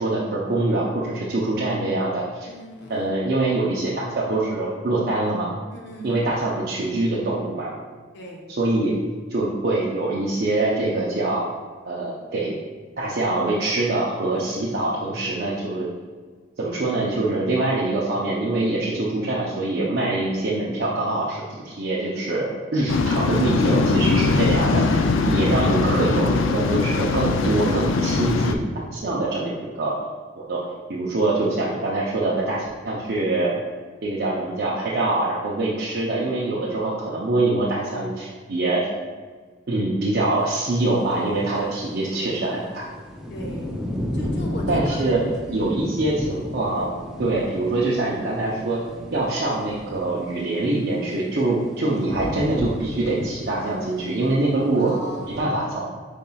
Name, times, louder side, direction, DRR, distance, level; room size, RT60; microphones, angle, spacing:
voice 1, 0.0-2.5 2.9-5.5 6.0-7.7 8.5-8.9 9.3-11.5 11.8-12.6 13.0-15.9 16.6-28.7 28.9-30.0 30.4-30.6 30.9-33.5 34.0-38.9 39.7-42.8 44.7-45.2 45.5-46.9 47.2-48.8 49.1-54.9 55.3-55.9, right 2 dB, 55° right, -6 dB, 0.6 m, -24 dB
voice 2, 2.4-3.1 5.7-6.5 8.1-8.4 14.3-14.9 25.0-25.6 42.0-42.3 43.3-43.7 44.1-45.0 45.5-45.9 47.1-47.4 51.4-51.8 54.8-55.8, right 1 dB, 55° left, -1 dB, 0.8 m, -39 dB
Waves surf, 22.9-28.6, left 3 dB, 80° left, 0.3 m, -21 dB
sound 1, 40.4-40.5 40.8-41.8 42.3-50.8 51.2-55.4, left 1 dB, ahead, 0.5 m, -33 dB
5.3 x 4.1 x 2.3 m, 1.5 s
head